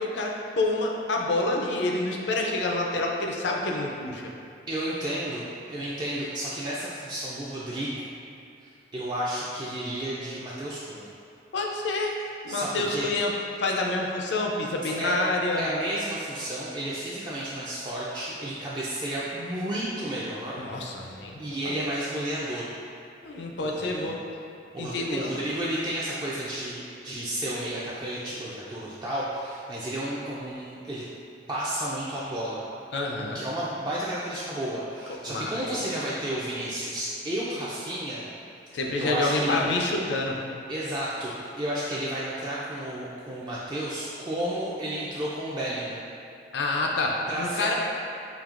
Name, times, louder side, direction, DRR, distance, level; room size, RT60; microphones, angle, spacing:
voice 1, 0.0-4.2 11.5-12.1 12.4-13.3 13.6-15.7 20.6-21.7 23.2-24.2 24.8-25.3 32.9-33.4 35.3-35.8 38.7-40.4 46.5-47.7, left 2 dB, 70° left, 0 dB, 0.5 m, -28 dB
voice 2, 4.7-7.9 8.6-11.1 12.5-13.1 14.8-15.1 15.5-22.7 23.6-24.0 24.7-31.0 31.5-32.7 33.3-38.2 38.7-39.6 40.7-46.0 47.3-47.7, right 1 dB, 25° right, -7 dB, 0.3 m, -32 dB
5.1 x 2.7 x 2.4 m, 2.6 s
head